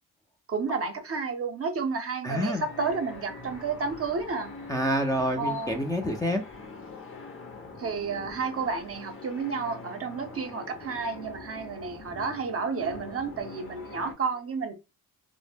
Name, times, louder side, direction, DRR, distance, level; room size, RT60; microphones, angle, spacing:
voice 1, 0.5-4.6 5.4-5.8 7.8-14.7, right 4 dB, 45° right, 0.6 m, -31 dB
voice 2, 2.2-2.6 4.7-6.4, equal, 10° left, 0.4 m, -27 dB
sound 1, 2.3-14.1, left 3 dB, 40° left, 0.7 m, -43 dB
2.0 x 2.0 x 3.3 m
cardioid pair, 80°, 33 cm